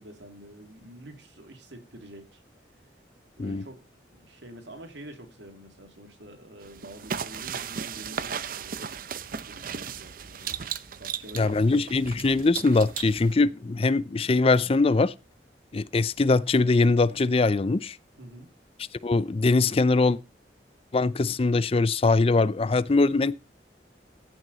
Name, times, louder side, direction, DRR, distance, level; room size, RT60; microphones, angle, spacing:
voice 1, 0.0-2.4 3.4-3.8 4.2-8.8 9.5-10.6 11.0-11.8 18.2-18.5, right 1 dB, 80° right, 2.6 m, -46 dB
sound 1, 6.6-13.3, right 7 dB, 50° right, 0.6 m, -36 dB
voice 2, 11.4-15.1 15.7-18.0 19.0-20.2 20.9-23.3, left 3 dB, 30° left, 0.5 m, -22 dB
14.5 x 6.1 x 4.0 m
head